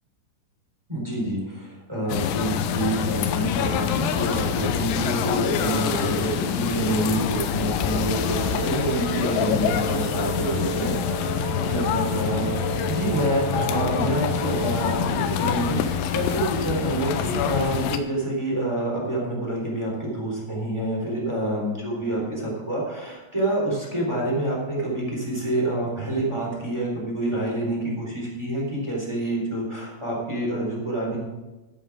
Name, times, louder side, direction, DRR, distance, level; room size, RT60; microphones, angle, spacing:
voice 1, 0.9-11.4 11.7-31.2, right 1 dB, 5° right, -3 dB, 3.1 m, -27 dB
sound 1, 2.1-18.0, left 9 dB, 80° left, 3.0 m, -26 dB
Wind instrument woodwind instrument, 8.1-14.9, right 11 dB, 85° right, 3.0 m, -34 dB
13.5 x 9.5 x 4.8 m, 1.1 s
omnidirectional pair, 5.6 m